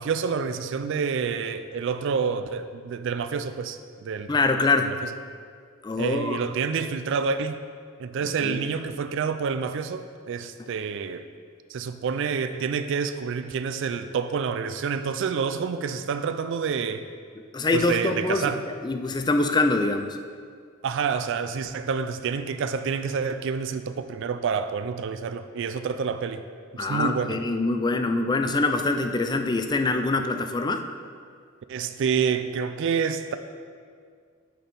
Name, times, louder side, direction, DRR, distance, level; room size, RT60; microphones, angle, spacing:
voice 1, 0.0-4.3 6.0-7.6 8.0-11.3 11.7-17.0 17.7-18.6 20.8-26.4 26.7-27.4 31.7-33.3, right 6 dB, 60° right, 10 dB, 0.4 m, -28 dB
voice 2, 4.3-4.9 5.8-6.4 8.4-8.6 17.5-20.2 26.8-30.8, left 3 dB, 20° left, 7 dB, 0.4 m, -24 dB
6.5 x 6.0 x 5.3 m, 2.1 s
head